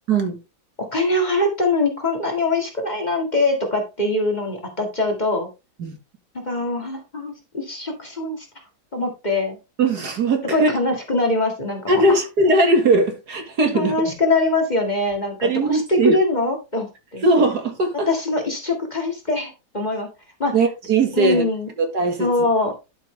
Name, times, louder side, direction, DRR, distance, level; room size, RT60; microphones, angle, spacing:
voice 1, 0.8-5.5 6.3-8.5 8.9-9.6 10.5-12.2 13.7-17.2 18.1-20.1 20.4-20.6 21.1-21.7 22.2-22.7, left 2 dB, 25° left, 1.9 m, -23 dB
voice 2, 9.8-10.7 11.9-13.9 15.4-16.2 17.2-18.1 20.5-21.4 21.8-22.3, right 2 dB, 70° right, 2.3 m, -19 dB
11.5 x 5.7 x 3.3 m
omnidirectional pair, 1.8 m